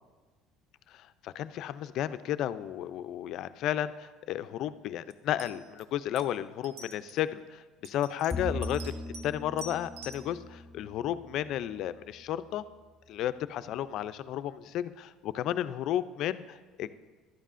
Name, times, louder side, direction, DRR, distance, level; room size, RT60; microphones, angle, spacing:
voice 1, 0.9-9.0 9.2-12.6 13.1-17.0, left 11 dB, 50° left, 13 dB, 0.4 m, -33 dB
sound 1, 5.1-5.2 5.4-5.8 6.2-6.3 6.6-7.2 7.8-9.3 9.6-10.2, right 3 dB, 65° right, 0.8 m, -46 dB
Bowed string instrument, 8.3-11.8, left 1 dB, 10° left, 2.0 m, -39 dB
14.5 x 11.5 x 2.5 m, 1.3 s
cardioid pair, 150°, 0 cm